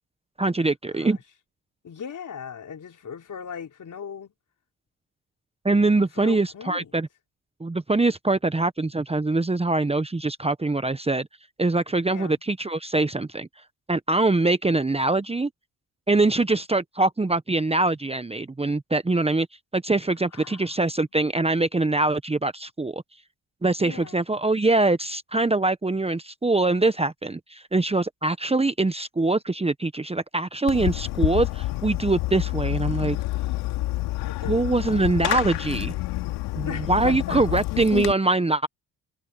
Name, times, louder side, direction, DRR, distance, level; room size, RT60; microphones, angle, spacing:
voice 1, 0.4-1.2 5.6-7.1 7.6-11.3 11.6-13.5 13.9-15.5 16.1-19.5 19.7-23.0 23.6-33.2 34.5-35.9 36.6-38.7, right 2 dB, 15° right, 1.2 m, -23 dB
voice 2, 0.9-1.2 1.8-4.3 6.1-6.9 12.0-12.4 20.3-20.8 23.8-24.2 34.2-35.1 36.6-37.6, left 7 dB, 50° left, 4.4 m, -38 dB
Fireworks, 30.7-38.1, left 17 dB, 85° left, 3.0 m, -28 dB
supercardioid pair, 60°, 39 cm